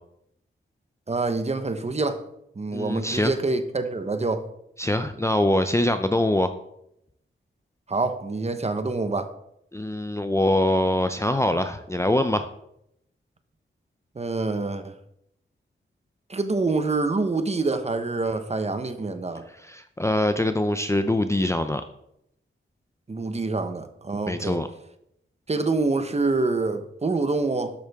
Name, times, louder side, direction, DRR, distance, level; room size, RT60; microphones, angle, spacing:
voice 1, 1.1-2.2 2.6-4.5 7.9-9.3 14.2-14.9 16.3-19.5 23.1-24.6 25.5-27.7, right 3 dB, 30° right, 0.9 m, -26 dB
voice 2, 2.7-3.3 4.8-6.5 9.7-12.5 19.6-21.8 24.3-24.7, left 1 dB, 15° left, 0.5 m, -23 dB
12.0 x 8.5 x 3.6 m
wide cardioid pair, 150°, 21 cm